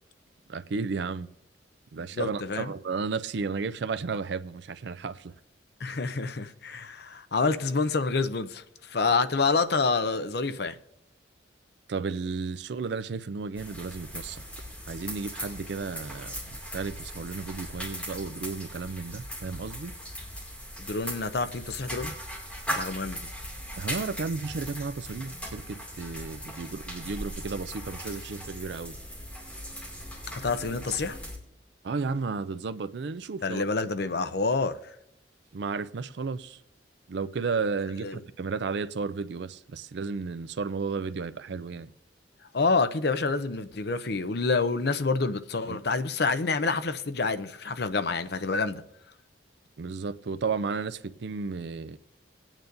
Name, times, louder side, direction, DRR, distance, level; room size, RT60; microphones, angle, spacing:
voice 1, 0.5-1.3 1.9-5.3 11.9-14.4 14.9-19.9 23.8-29.0 31.8-33.6 35.5-36.6 37.1-41.9 45.7-45.8 49.8-52.0, right 4 dB, 65° right, 0.4 m, -33 dB
voice 2, 2.2-2.7 5.8-10.8 20.8-22.1 22.7-23.3 30.4-31.2 33.4-34.8 38.0-38.2 42.5-48.8, left 4 dB, 60° left, 0.6 m, -27 dB
sound 1, 13.5-31.4, equal, 5° left, 2.3 m, -39 dB
20.0 x 9.0 x 2.6 m
head